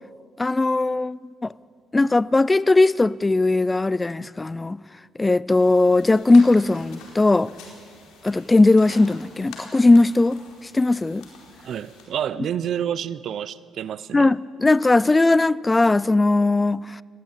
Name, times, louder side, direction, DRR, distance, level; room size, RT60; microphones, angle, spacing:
voice 1, 0.4-1.5 1.9-4.8 5.2-7.5 8.2-11.2 14.1-17.0, left 2 dB, 15° left, 0.4 m, -18 dB
sound 1, 5.5-12.1, left 4 dB, 90° left, 4.4 m, -46 dB
voice 2, 11.6-14.3, right 9 dB, 60° right, 0.6 m, -29 dB
20.5 x 15.0 x 8.9 m
cardioid pair, 95°, 0 cm